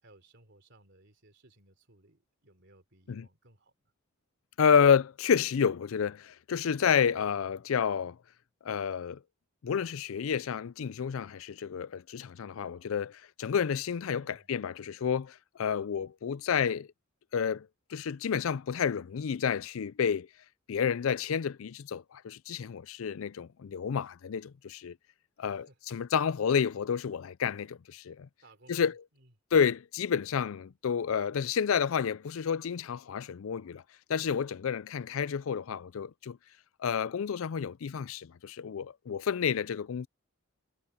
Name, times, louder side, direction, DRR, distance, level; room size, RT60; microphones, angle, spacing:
voice 1, 0.0-3.7 7.1-7.5 14.1-14.5 25.4-25.8 28.4-29.3 35.1-35.2, right 2 dB, 60° right, 3.6 m, -60 dB
voice 2, 4.6-8.2 8.6-9.2 9.6-16.9 17.3-20.3 20.7-25.0 25.4-28.3 28.7-29.0 29.5-33.8 34.1-36.4 36.8-40.1, left 7 dB, 75° left, 0.4 m, -30 dB
head